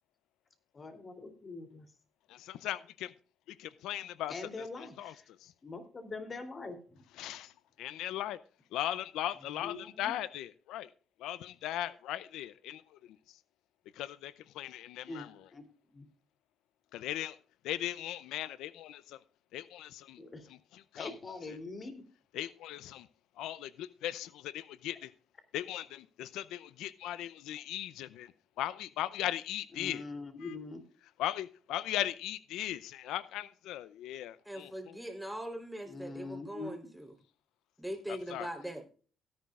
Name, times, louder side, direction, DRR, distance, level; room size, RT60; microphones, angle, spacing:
voice 1, 0.7-1.9 4.3-5.3 5.6-7.0 9.5-10.1 15.1-15.7 15.9-16.1 20.2-20.5 21.0-22.1 29.7-30.8 35.8-36.9, left 3 dB, 35° left, 3.0 m, -43 dB
voice 2, 2.3-3.1 3.5-4.3 4.8-5.1 5.4-5.5 7.2-7.5 7.8-8.4 8.7-10.9 11.2-13.0 13.3-13.4 13.9-15.3 16.9-17.4 17.6-19.2 19.5-20.2 20.7-21.1 22.3-23.1 23.4-25.1 25.5-28.3 28.6-30.0 30.4-30.5 31.2-35.0 38.1-38.5, left 13 dB, 90° left, 0.5 m, -38 dB
voice 3, 34.5-37.1 37.8-38.9, equal, 5° right, 3.6 m, -41 dB
17.0 x 10.5 x 2.4 m
cardioid pair, 90°, 0 cm